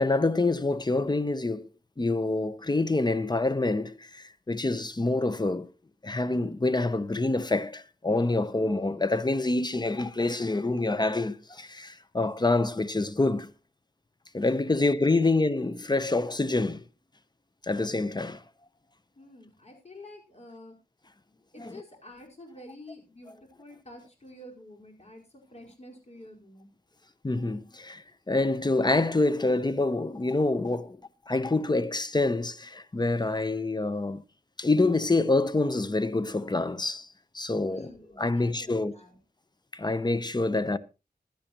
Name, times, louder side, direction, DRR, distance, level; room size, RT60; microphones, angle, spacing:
voice 1, 0.0-1.7 2.0-5.7 6.0-13.5 14.3-16.8 17.6-18.4 21.6-21.8 27.2-31.0 31.3-34.2 34.6-37.1 37.3-37.9 38.2-38.9 39.7-40.8, left 2 dB, 25° left, 0.8 m, -26 dB
voice 2, 14.6-15.4 19.1-20.7 21.3-26.7 37.6-39.2, left 1 dB, 40° left, 4.5 m, -48 dB
15.5 x 11.5 x 3.0 m
wide cardioid pair, 75°, 16 cm